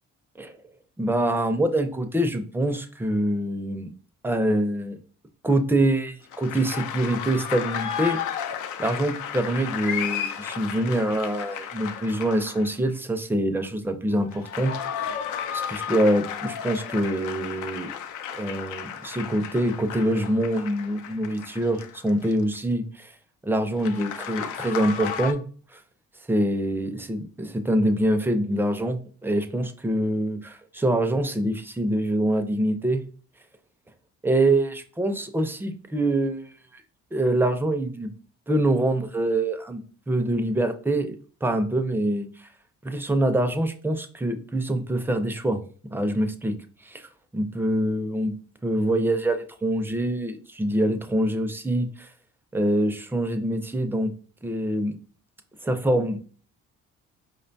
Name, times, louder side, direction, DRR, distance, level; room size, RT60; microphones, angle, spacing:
voice 1, 1.0-3.9 4.2-5.0 5.4-8.2 8.8-14.8 15.5-17.9 18.3-23.1 23.4-25.4 25.7-25.8 26.3-33.0 34.2-36.8 37.1-38.1 38.5-39.8 40.1-41.2 41.4-42.5 42.8-45.6 45.9-46.6 46.8-52.1 52.5-54.1 54.4-55.0 55.6-56.2, right 1 dB, 5° right, 7 dB, 0.4 m, -25 dB
sound 1, 6.3-12.9 14.2-22.6 23.8-25.3, left 8 dB, 85° left, 0.5 m, -33 dB
4.9 x 2.2 x 2.5 m, 0.41 s
cardioid pair, 90°, 30 cm